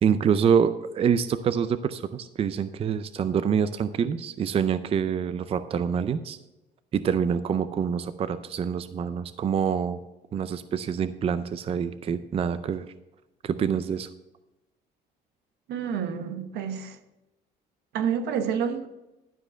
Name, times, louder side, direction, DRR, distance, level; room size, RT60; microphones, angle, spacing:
voice 1, 0.0-6.4 6.9-10.0 10.3-12.9 13.4-14.1, right 7 dB, 35° right, 0.4 m, -26 dB
voice 2, 15.7-17.0 17.9-18.9, right 7 dB, 80° right, 1.0 m, -28 dB
11.5 x 5.0 x 6.3 m
cardioid pair, 110°, 17 cm